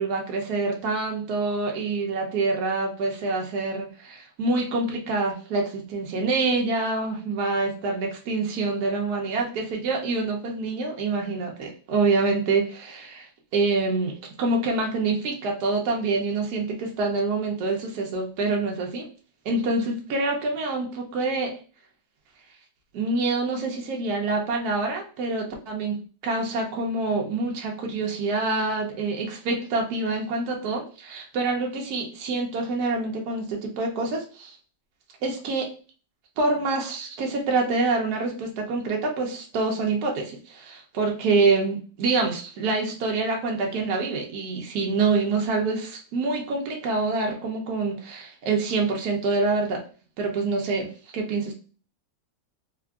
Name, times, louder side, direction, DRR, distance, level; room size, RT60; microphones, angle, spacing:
voice 1, 0.0-13.3 13.5-19.1 19.4-21.6 22.9-34.6 35.2-35.7 36.4-49.8 50.2-51.5, right 3 dB, 70° right, 1 dB, 1.1 m, -26 dB
3.6 x 2.4 x 2.2 m, 0.37 s
omnidirectional pair, 1.8 m